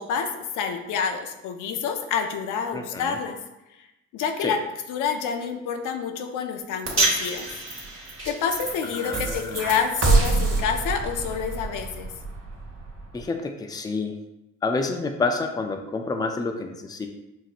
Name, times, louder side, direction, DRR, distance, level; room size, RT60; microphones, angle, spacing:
voice 1, 0.0-3.4 3.8-3.9 4.1-4.6 4.9-7.5 8.2-12.1, left 6 dB, 90° left, 6 dB, 0.5 m, -28 dB
voice 2, 2.7-3.2 4.4-4.6 8.9-9.7 13.1-14.2 14.6-17.1, left 3 dB, 15° left, 5 dB, 0.4 m, -28 dB
sound 1, 6.9-13.2, right 3 dB, 45° right, 1.1 m, -26 dB
5.8 x 2.6 x 2.5 m, 0.95 s
cardioid pair, 90°, 30 cm